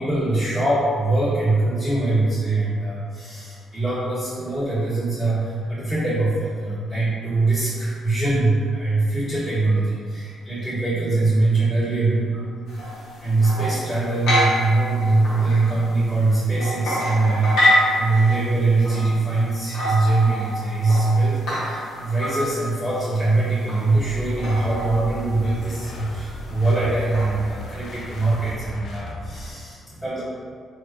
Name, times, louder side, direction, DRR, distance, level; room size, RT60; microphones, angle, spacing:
voice 1, 0.0-12.6 12.9-30.2, right 2 dB, 10° left, -15 dB, 1.2 m, -22 dB
sound 1, 12.7-28.5, equal, 80° left, 0.8 m, -28 dB
sound 2, 23.9-29.5, left 1 dB, 65° left, 0.4 m, -36 dB
3.2 x 2.4 x 2.6 m, 2.1 s
cardioid pair, 90°, 0 cm